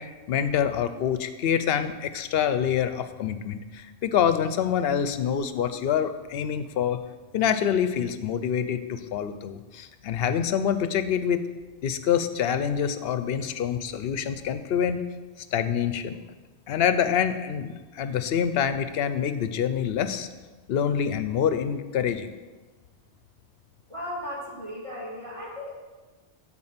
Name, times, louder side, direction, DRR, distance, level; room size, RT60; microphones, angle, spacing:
voice 1, 0.0-7.0 7.3-11.4 11.8-15.0 15.4-16.2 16.7-20.3 20.7-22.3, left 8 dB, 65° left, 11 dB, 0.8 m, -26 dB
voice 2, 23.9-25.7, left 1 dB, 25° right, -6 dB, 2.3 m, -36 dB
12.0 x 4.2 x 5.7 m, 1.3 s
omnidirectional pair, 1.2 m